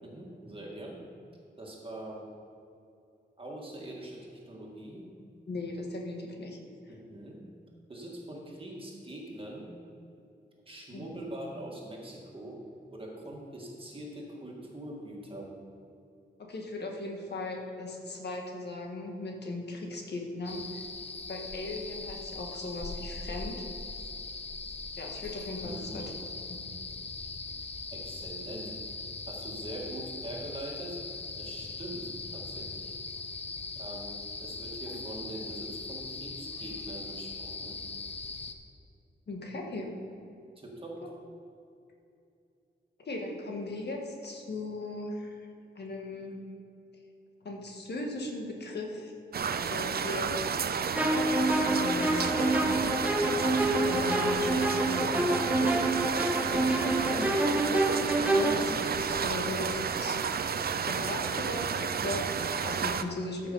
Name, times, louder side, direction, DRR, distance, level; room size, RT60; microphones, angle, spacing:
voice 1, 0.0-1.0 1.6-2.2 3.4-5.1 6.9-7.4 7.9-9.7 10.7-12.6 12.9-15.5 25.6-26.1 27.9-28.7 29.3-31.0 31.3-32.9 33.8-37.8 40.6-41.0, right 1 dB, 30° right, -3 dB, 1.9 m, -43 dB
voice 2, 5.5-6.6 10.9-11.1 16.4-20.8 21.2-23.6 25.0-26.1 26.5-26.6 34.9-35.0 39.3-40.0 41.0-41.1 43.0-45.5 45.7-46.4 47.4-49.1 49.7-50.4 51.5-52.8 53.3-53.4 53.7-56.2 56.6-60.2 60.8-63.5, left 2 dB, 60° left, 1 dB, 1.7 m, -38 dB
sound 1, 20.4-38.5, left 3 dB, 35° left, 0.7 m, -40 dB
sound 2, 49.3-63.0, right 6 dB, 55° right, 0.5 m, -31 dB
sound 3, 51.0-58.6, right 1 dB, 10° right, 0.6 m, -27 dB
14.0 x 6.0 x 5.5 m, 2.7 s
wide cardioid pair, 155°, 19 cm